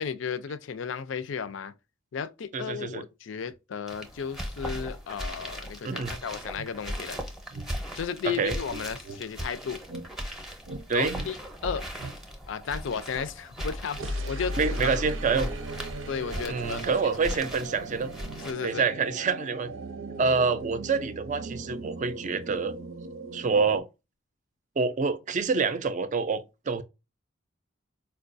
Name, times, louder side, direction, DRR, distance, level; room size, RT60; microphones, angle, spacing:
voice 1, 0.0-1.7 2.1-7.2 8.0-9.8 10.9-11.4 11.6-11.8 12.5-14.9 16.1-17.1 18.4-18.8, left 6 dB, 70° left, 0.4 m, -34 dB
voice 2, 2.5-3.0 5.8-6.1 8.4-8.6 10.9-11.2 14.6-15.5 16.5-18.1 18.6-19.7 20.2-22.7 23.3-23.8 24.8-26.8, right 5 dB, 40° right, 0.4 m, -27 dB
sound 1, 3.9-18.5, equal, ahead, 0.7 m, -38 dB
sound 2, 6.5-6.7 7.5-7.7 8.7-9.2 9.9-10.1 10.6-10.9 11.1-11.3 12.0-12.2 14.0-23.8, right 1 dB, 85° right, 0.7 m, -37 dB
4.5 x 2.2 x 2.5 m
head